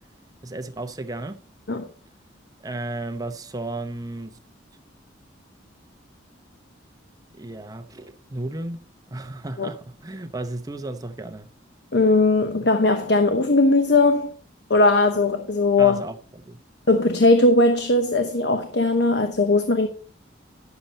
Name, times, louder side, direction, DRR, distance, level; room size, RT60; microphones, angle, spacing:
voice 1, 0.4-1.4 2.6-4.3 7.4-8.8 9.1-11.5 15.8-16.2 16.4-16.6, right 2 dB, 20° right, 0.8 m, -33 dB
voice 2, 11.9-14.3 14.7-16.0 16.9-19.9, left 2 dB, 60° left, 0.9 m, -19 dB
10.5 x 7.0 x 4.1 m
head